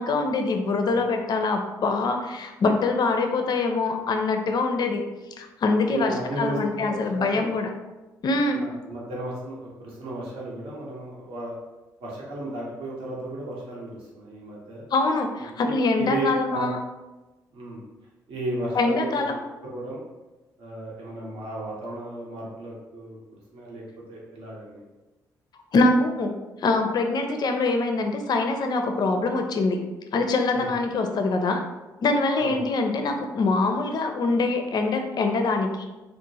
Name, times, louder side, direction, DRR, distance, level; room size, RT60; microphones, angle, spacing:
voice 1, 0.0-5.0 5.4-7.7 8.2-8.6 14.9-16.8 18.7-19.4 25.7-26.3 26.6-29.8 30.1-31.6 32.0-35.8, left 3 dB, 45° left, 5 dB, 0.4 m, -24 dB
voice 2, 5.9-7.5 8.6-11.6 12.0-14.8 15.6-16.7 17.5-17.8 18.3-20.0 20.6-23.2 23.5-23.8 24.1-24.8 30.5-30.7 32.4-32.6, right 1 dB, 65° right, -4 dB, 0.8 m, -34 dB
2.9 x 2.0 x 2.7 m, 1.1 s
hypercardioid pair, 45°, 10 cm